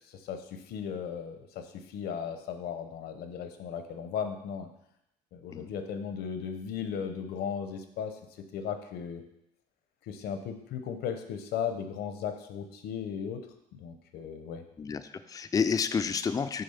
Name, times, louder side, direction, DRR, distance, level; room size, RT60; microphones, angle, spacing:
voice 1, 0.1-4.7 5.3-9.2 10.0-13.4 13.7-14.6, left 7 dB, 75° left, 7 dB, 0.8 m, -36 dB
voice 2, 14.8-16.6, left 6 dB, 20° left, 10 dB, 0.4 m, -30 dB
6.7 x 3.6 x 5.7 m, 0.82 s
cardioid pair, 110°, 17 cm